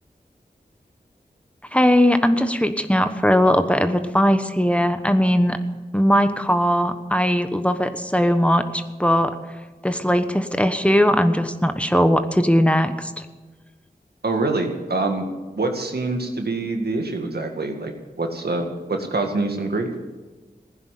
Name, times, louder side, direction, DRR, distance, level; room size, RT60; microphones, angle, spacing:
voice 1, 1.7-5.6 5.9-9.3 9.8-13.1, equal, 5° left, 9 dB, 1.2 m, -19 dB
voice 2, 14.2-15.2 15.5-19.9, right 3 dB, 80° right, 4 dB, 2.0 m, -25 dB
16.0 x 10.5 x 8.4 m, 1.2 s
wide cardioid pair, 50°, 16 cm